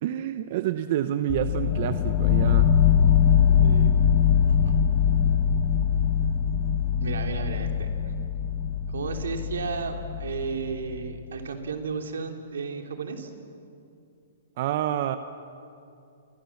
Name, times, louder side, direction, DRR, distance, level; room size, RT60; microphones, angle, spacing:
voice 1, 0.0-2.7 14.6-15.2, right 11 dB, 50° right, 10 dB, 0.9 m, -28 dB
sound 1, 1.3-11.1, left 8 dB, 30° left, 1.5 m, -22 dB
voice 2, 3.6-3.9 4.5-4.7 7.0-7.9 8.9-13.3, right 5 dB, 85° right, 4 dB, 3.1 m, -33 dB
28.0 x 24.0 x 7.2 m, 2.5 s
hypercardioid pair, 150°, 0 cm